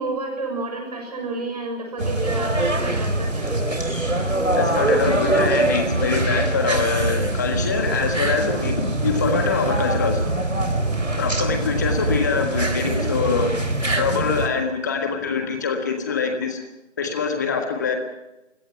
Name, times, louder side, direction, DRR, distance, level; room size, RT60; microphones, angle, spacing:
voice 1, 0.0-3.8 10.8-11.0, right 3 dB, 30° right, 2 dB, 6.7 m, -31 dB
sound 1, 2.0-14.5, right 2 dB, 80° right, 4.2 m, -23 dB
voice 2, 4.5-10.3 11.2-13.6 13.9-16.6 17.0-17.9, left 5 dB, 15° left, 5 dB, 1.6 m, -24 dB
27.0 x 17.5 x 5.9 m, 0.94 s
figure-of-eight pair, 160°, 38 cm